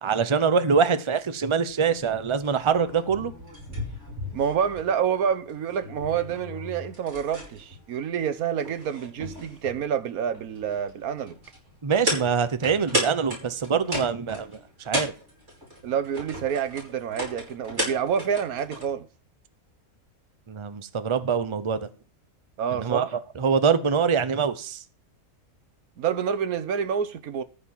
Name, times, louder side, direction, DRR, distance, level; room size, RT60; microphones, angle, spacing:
voice 1, 0.0-3.3 11.8-14.5 14.9-15.1 20.5-21.8 22.7-23.0 23.4-24.8, right 6 dB, 25° right, 0.7 m, -24 dB
sound 1, 1.7-19.0, equal, 50° right, 5.6 m, -36 dB
voice 2, 4.3-11.4 15.8-19.0 22.6-23.2 26.0-27.4, right 8 dB, 85° right, 1.4 m, -28 dB
14.0 x 5.2 x 7.4 m
omnidirectional pair, 1.5 m